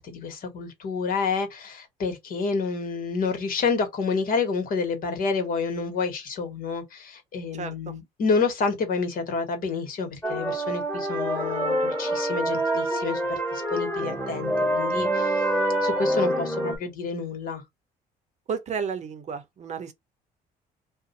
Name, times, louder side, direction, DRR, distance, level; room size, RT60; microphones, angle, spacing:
voice 1, 0.0-15.4 15.8-17.6, left 4 dB, 55° left, 1.3 m, -29 dB
voice 2, 7.6-7.9 18.5-19.9, right 6 dB, 45° right, 0.7 m, -32 dB
sound 1, 10.2-16.8, right 1 dB, 10° left, 1.5 m, -26 dB
2.6 x 2.2 x 3.8 m
cardioid pair, 110°, 17 cm